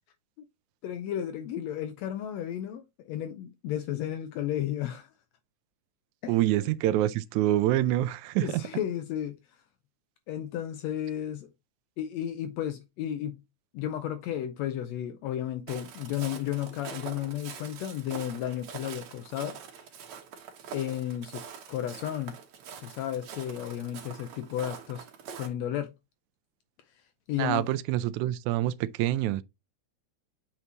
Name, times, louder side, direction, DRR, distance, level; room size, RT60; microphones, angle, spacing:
voice 1, 0.8-5.1 6.2-6.4 8.4-9.4 10.3-11.5 12.0-13.4 13.7-19.6 20.7-21.4 21.7-22.4 22.8-25.1 25.4-25.9 27.3-27.7, left 11 dB, 80° left, 1.8 m, -33 dB
voice 2, 6.3-8.6 27.4-29.4, right 14 dB, 85° right, 2.0 m, -26 dB
Walk footsteps, 15.7-25.5, right 7 dB, 70° right, 2.5 m, -44 dB
8.0 x 4.4 x 2.8 m
omnidirectional pair, 3.3 m